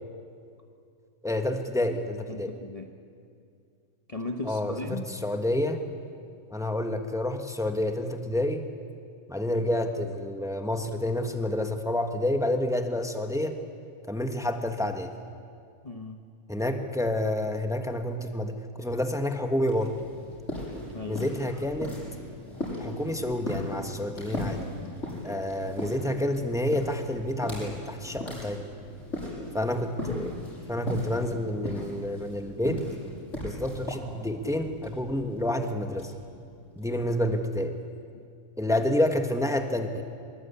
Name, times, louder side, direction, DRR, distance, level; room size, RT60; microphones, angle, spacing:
voice 1, 1.2-2.5 4.4-5.8 6.5-8.6 9.3-13.5 14.1-15.1 16.5-19.9 21.0-21.9 22.8-24.6 25.2-28.6 29.5-30.3 30.7-32.8 33.4-36.1 36.7-37.8 38.6-40.0, left 1 dB, ahead, 5 dB, 1.4 m, -29 dB
voice 2, 2.3-2.9 4.1-5.1 15.8-16.2 20.9-21.4 24.8-25.0 30.0-30.4 38.1-38.3, left 3 dB, 25° left, 3 dB, 1.1 m, -37 dB
sound 1, 19.6-37.1, left 1 dB, 55° left, 8.4 m, -38 dB
25.0 x 22.0 x 8.5 m, 2.4 s
omnidirectional pair, 1.5 m